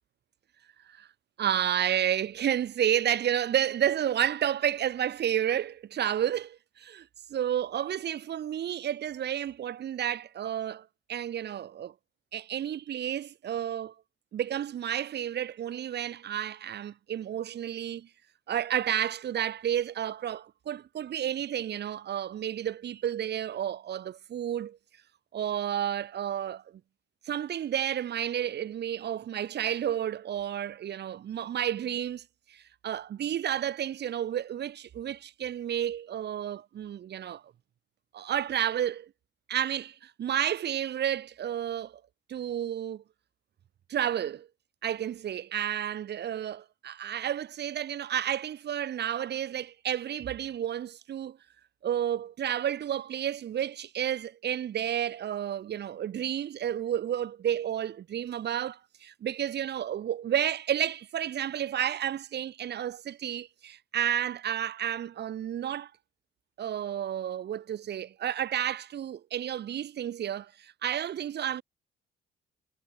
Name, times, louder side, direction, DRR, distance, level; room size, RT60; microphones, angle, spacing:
voice 1, 1.4-11.9 12.3-13.9 14.3-18.1 18.5-24.8 25.3-26.6 27.3-32.2 32.5-37.4 38.1-39.1 39.5-42.0 42.3-43.0 43.9-44.5 44.8-51.4 51.8-65.9 66.6-71.6, right 10 dB, 60° right, 1.1 m, -31 dB
cardioid pair, 90°, 20 cm